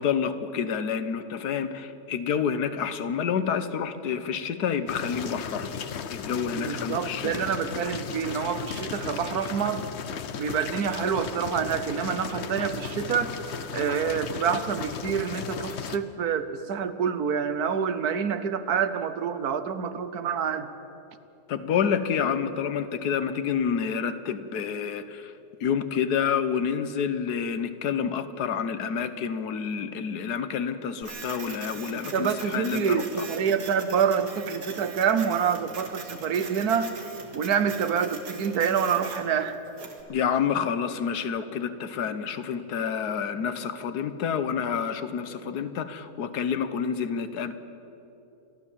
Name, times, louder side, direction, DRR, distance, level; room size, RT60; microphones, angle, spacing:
voice 1, 0.0-5.7 6.1-7.3 21.5-25.3 25.6-33.3 40.1-47.5, left 7 dB, 80° left, 11 dB, 1.5 m, -28 dB
sound 1, 4.9-16.0, left 7 dB, 50° left, 0.9 m, -35 dB
voice 2, 6.6-9.9 10.4-13.3 13.7-20.7 32.1-36.9 37.3-39.6, right 7 dB, 70° right, 11 dB, 1.4 m, -27 dB
Printer, 31.0-40.0, right 4 dB, 90° right, 2.4 m, -41 dB
29.5 x 12.5 x 7.4 m, 2.9 s
omnidirectional pair, 1.7 m